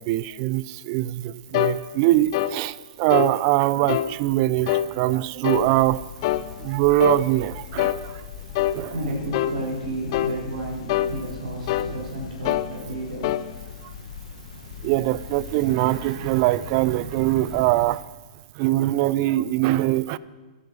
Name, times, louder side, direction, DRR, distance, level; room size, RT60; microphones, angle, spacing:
voice 1, 0.0-6.0 6.6-8.2 8.7-8.9 14.8-18.0 18.6-20.2, right 16 dB, 40° right, 0.5 m, -22 dB
sound 1, 1.5-1.8 2.3-2.6 3.1-3.3 3.9-4.1 4.7-4.9 5.4-5.7 6.2-6.5 7.0-7.2 7.8-8.0 8.5-8.8 9.3-9.6 10.1-10.4 10.9-11.1 11.7-11.9 12.4-12.7 13.2-13.4, left 13 dB, 45° left, 0.7 m, -24 dB
sound 2, 5.5-18.0, left 8 dB, 65° left, 1.8 m, -41 dB
voice 2, 8.9-13.3, right 1 dB, 80° right, 6.1 m, -32 dB
13.0 x 12.0 x 6.4 m
hypercardioid pair, 130°, 4 cm